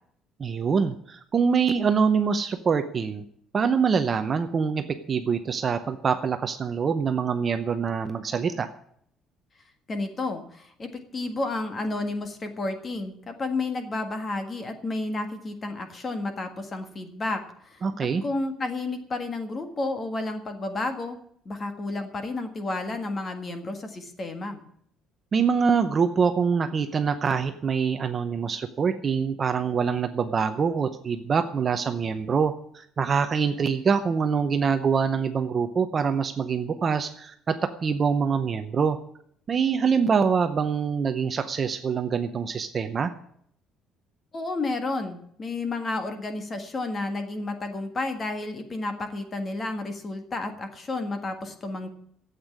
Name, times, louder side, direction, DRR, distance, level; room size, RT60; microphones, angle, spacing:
voice 1, 0.4-3.2 3.5-8.7 17.8-18.2 25.3-39.0 39.5-43.1, right 6 dB, 25° right, 8 dB, 0.7 m, -25 dB
voice 2, 9.9-17.8 18.2-21.2 21.4-24.6 44.3-51.9, left 2 dB, 25° left, 7 dB, 1.6 m, -31 dB
12.5 x 8.2 x 9.6 m, 0.66 s
cardioid pair, 175°, 0 cm